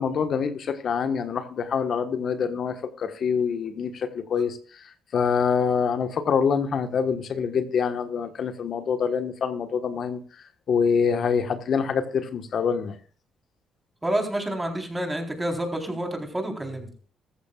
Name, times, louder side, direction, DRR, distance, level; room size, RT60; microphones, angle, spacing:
voice 1, 0.0-4.6 5.1-10.2 10.7-12.9, left 6 dB, 60° left, 8 dB, 1.4 m, -25 dB
voice 2, 14.0-16.9, right 1 dB, 15° right, 4 dB, 4.0 m, -28 dB
14.5 x 14.5 x 2.4 m, 0.43 s
cardioid pair, 90°, 0 cm